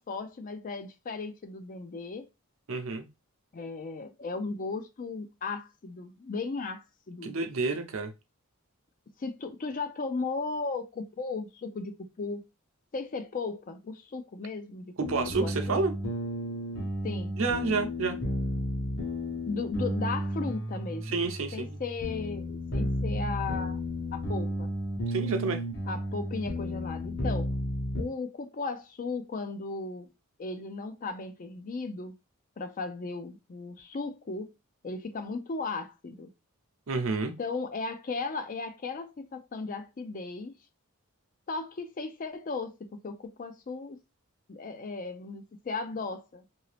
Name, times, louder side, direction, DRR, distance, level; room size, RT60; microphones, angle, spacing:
voice 1, 0.0-2.3 3.5-7.3 9.2-12.4 12.9-15.1 15.4-15.8 17.0-17.3 19.5-21.2 21.5-23.8 24.1-24.7 25.9-27.5 27.9-30.1 30.4-32.2 32.6-34.5 34.8-36.3 37.4-40.5 41.5-44.0 44.5-46.5, left 4 dB, 40° left, 0.4 m, -36 dB
voice 2, 2.7-3.1 7.2-8.1 15.0-15.9 17.4-18.2 21.1-21.8 25.1-25.6 36.9-37.3, right 4 dB, 65° right, 0.6 m, -29 dB
sound 1, 15.0-28.0, equal, 55° left, 1.0 m, -33 dB
2.8 x 2.6 x 3.3 m
head